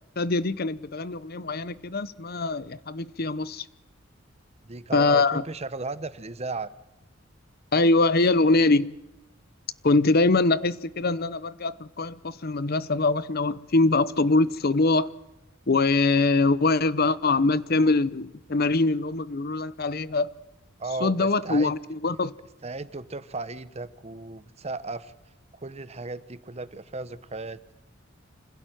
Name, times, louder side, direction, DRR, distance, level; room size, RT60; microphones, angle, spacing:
voice 1, 0.2-3.7 4.9-5.4 7.7-8.9 9.8-15.1 15.7-20.3 21.0-22.3, left 3 dB, 50° left, 0.8 m, -23 dB
voice 2, 4.6-6.7 20.8-21.7 22.6-25.1 25.6-27.6, right 3 dB, 30° right, 0.9 m, -35 dB
26.0 x 16.5 x 9.2 m
head